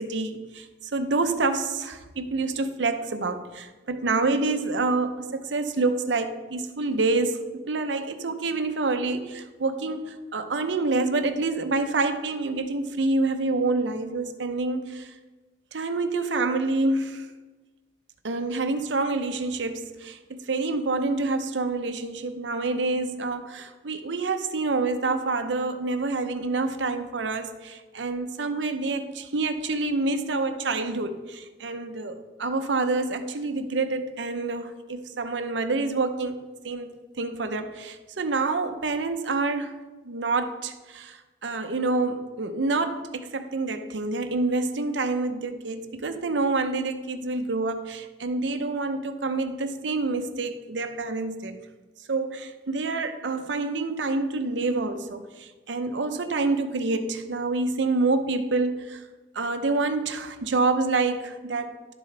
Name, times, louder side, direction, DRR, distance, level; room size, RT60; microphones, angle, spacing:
voice 1, 0.0-15.1 15.7-17.3 18.2-36.4 36.6-39.8 40.0-51.6 52.1-59.0 59.3-61.7, right 3 dB, 80° right, 9 dB, 0.7 m, -27 dB
12.0 x 7.3 x 3.3 m, 1.3 s
head